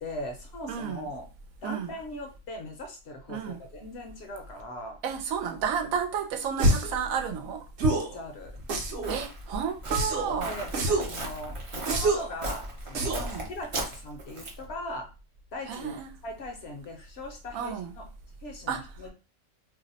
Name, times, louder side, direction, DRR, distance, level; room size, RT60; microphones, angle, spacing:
voice 1, 0.0-1.3 1.6-5.0 7.9-8.5 10.4-15.1 15.5-16.0 16.2-18.1 18.4-19.1, left 1 dB, 60° left, 0.7 m, -40 dB
voice 2, 0.7-1.1 1.6-2.0 3.3-3.6 5.0-7.6 9.1-10.6 13.1-13.5 15.7-16.1 17.5-17.9 18.7-18.8, right 7 dB, 85° right, 1.0 m, -32 dB
sound 1, 6.6-7.0 7.8-8.2 8.7-9.2 9.9-10.3 10.7-11.2 11.9-12.3 12.9-13.3, right 2 dB, 65° right, 0.9 m, -26 dB
Walk footsteps, 8.4-14.7, right 1 dB, 40° right, 0.4 m, -37 dB
2.6 x 2.0 x 3.9 m
omnidirectional pair, 1.4 m